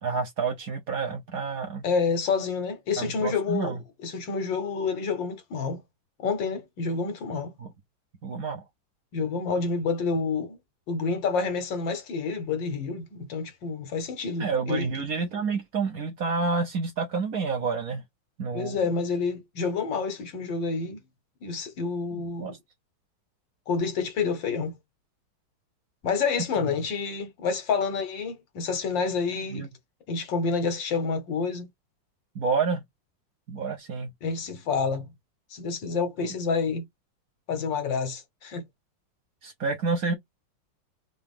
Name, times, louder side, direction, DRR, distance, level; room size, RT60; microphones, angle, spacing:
voice 1, 0.0-1.8 3.0-3.8 7.6-7.7 8.2-8.6 14.4-18.0 18.4-18.8 22.1-22.5 29.5-29.7 32.3-32.8 33.5-34.1 39.4-40.1, right 4 dB, 55° right, 1.1 m, -29 dB
voice 2, 1.8-5.8 6.2-7.5 9.1-10.6 10.9-14.9 18.5-21.0 21.4-22.5 23.7-24.7 26.0-29.7 30.1-31.7 34.2-35.1 35.5-36.8 37.5-38.6, left 5 dB, 70° left, 1.7 m, -28 dB
3.9 x 2.9 x 3.6 m
omnidirectional pair, 2.2 m